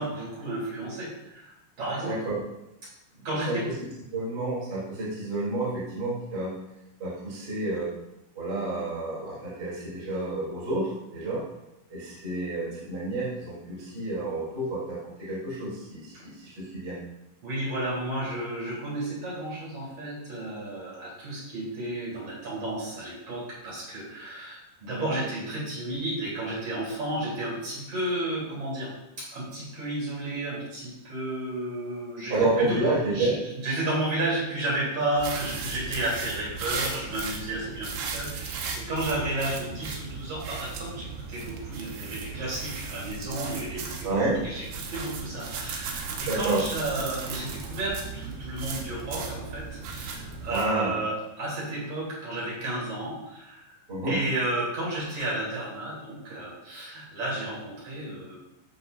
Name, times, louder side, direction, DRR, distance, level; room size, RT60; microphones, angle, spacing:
voice 1, 0.0-2.2 2.8-2.9 3.2-3.7 16.1-16.2 17.4-44.1 44.4-53.8 54.0-58.4, right 1 dB, 45° right, -7 dB, 4.9 m, -32 dB
voice 2, 2.0-2.4 3.5-3.7 4.1-6.6 7.0-7.9 8.4-11.4 11.9-17.0 32.3-33.4 44.0-44.4 46.3-46.6 50.5-51.0 53.9-54.2, right 2 dB, 25° right, -8 dB, 3.8 m, -29 dB
sound 1, 35.2-50.7, right 5 dB, 85° right, 3.3 m, -36 dB
14.5 x 7.1 x 2.7 m, 0.90 s
omnidirectional pair, 4.6 m